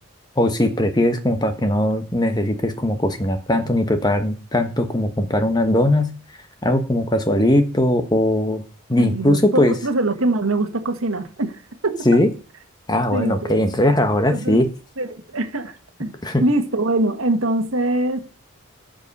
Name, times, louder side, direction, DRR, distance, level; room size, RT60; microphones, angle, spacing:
voice 1, 0.4-6.1 6.6-8.6 8.9-9.7 12.0-12.3 12.9-14.7 16.2-16.4, left 1 dB, 20° left, 1.1 m, -19 dB
voice 2, 8.9-12.2 12.9-13.7 14.3-14.6 15.0-16.1 16.4-18.2, right 2 dB, 75° right, 1.5 m, -23 dB
13.5 x 5.2 x 5.5 m
head